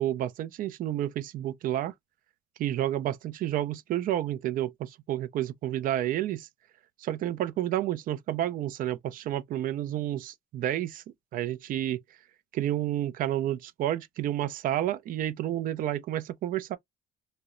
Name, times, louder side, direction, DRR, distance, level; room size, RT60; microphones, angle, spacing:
voice 1, 0.0-1.9 2.6-6.5 7.0-11.0 11.3-12.0 12.5-16.8, right 12 dB, 55° right, 0.4 m, -30 dB
2.7 x 2.1 x 2.4 m
cardioid pair, 110°, 17 cm